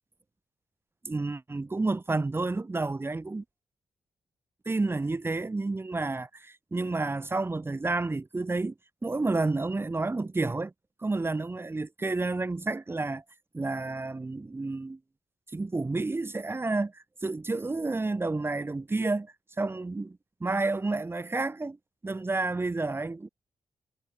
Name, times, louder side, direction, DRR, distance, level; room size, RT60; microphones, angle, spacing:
voice 1, 1.0-3.4 4.6-8.7 9.0-10.7 11.0-13.2 13.5-15.0 15.5-21.8 22.0-23.3, right 3 dB, 25° right, 1.4 m, -30 dB
cardioid pair, 95°, 10 cm